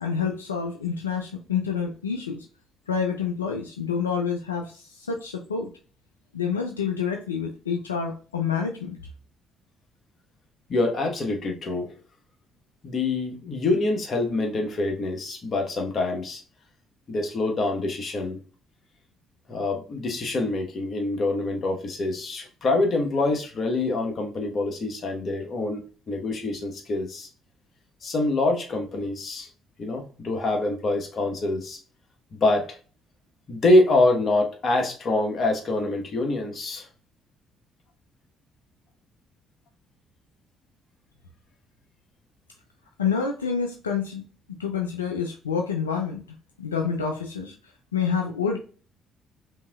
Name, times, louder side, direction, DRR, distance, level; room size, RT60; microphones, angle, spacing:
voice 1, 0.0-2.5 2.9-5.7 6.3-9.0 43.0-44.2 44.6-46.2 46.6-47.5 47.9-48.6, left 6 dB, 90° left, 3 dB, 0.4 m, -28 dB
voice 2, 10.7-11.9 12.8-16.4 17.1-18.4 19.5-27.3 28.0-29.5 29.8-31.8 32.3-32.8 33.5-36.9, left 2 dB, 45° left, 3 dB, 1.2 m, -25 dB
5.3 x 2.8 x 2.3 m, 0.38 s
hypercardioid pair, 50°, 0 cm